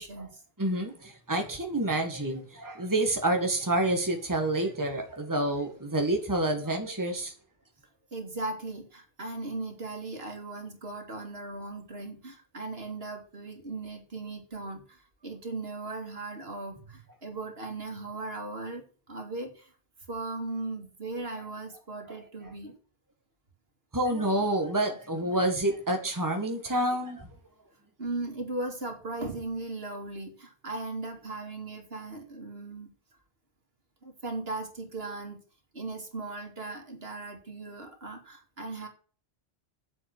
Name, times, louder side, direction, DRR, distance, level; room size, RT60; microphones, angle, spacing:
voice 1, 0.0-0.4 8.1-19.7 20.1-22.7 25.2-25.4 28.0-32.9 34.0-35.4 35.7-38.9, right 2 dB, 75° right, 2.8 m, -38 dB
voice 2, 0.6-7.3 22.1-22.2 23.9-27.3, right 1 dB, 20° right, 1.9 m, -28 dB
8.8 x 7.6 x 6.1 m
omnidirectional pair, 1.0 m